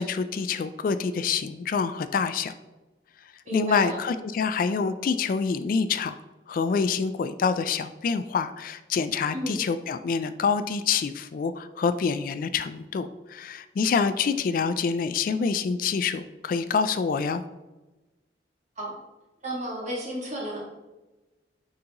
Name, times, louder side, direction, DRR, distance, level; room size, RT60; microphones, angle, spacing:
voice 1, 0.0-2.5 3.5-6.1 6.5-17.4, left 5 dB, 50° left, 11 dB, 0.3 m, -26 dB
voice 2, 3.4-4.0 9.3-9.6 18.8-19.0 19.4-20.6, right 1 dB, 40° right, -3 dB, 1.7 m, -32 dB
9.1 x 3.9 x 2.9 m, 1.1 s
head